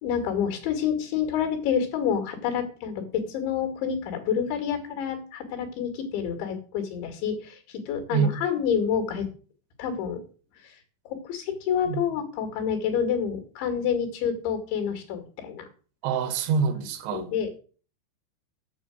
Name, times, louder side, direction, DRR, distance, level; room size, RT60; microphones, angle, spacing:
voice 1, 0.0-9.3 9.8-10.2 10.6-10.7 11.1-15.7 17.1-17.6, left 7 dB, 90° left, 4.5 m, -28 dB
voice 2, 16.0-17.3, right 6 dB, 90° right, 3.7 m, -25 dB
9.3 x 6.8 x 7.7 m
omnidirectional pair, 5.1 m